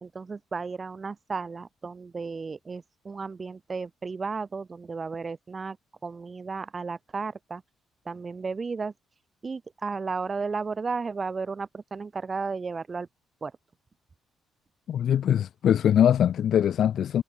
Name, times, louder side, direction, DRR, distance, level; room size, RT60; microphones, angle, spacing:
voice 1, 0.0-5.8 6.0-7.6 8.0-8.9 9.4-13.1 13.4-13.5, right 4 dB, 35° right, 1.2 m, -34 dB
voice 2, 14.9-17.2, left 9 dB, 65° left, 0.6 m, -22 dB
cardioid pair, 90°, 0 cm